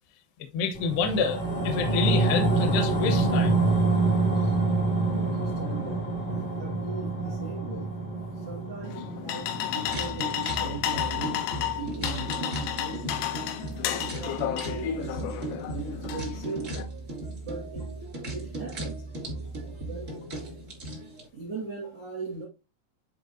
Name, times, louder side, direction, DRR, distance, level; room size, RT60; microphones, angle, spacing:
voice 1, 0.5-3.6 7.2-7.3, left 5 dB, 70° left, 2.8 m, -28 dB
sound 1, 0.7-11.3 11.7-11.8, right 2 dB, 40° left, 0.9 m, -27 dB
voice 2, 5.1-7.9 8.4-13.2 13.8-15.4 15.7-16.7 17.4-18.0 18.3-19.0 19.9-20.2 21.3-22.5, right 3 dB, 80° right, 1.3 m, -39 dB
sound 2, 8.8-16.8, left 11 dB, 85° left, 3.5 m, -32 dB
sound 3, 9.8-21.3, right 2 dB, 60° right, 0.8 m, -36 dB
10.5 x 3.7 x 2.6 m
omnidirectional pair, 5.9 m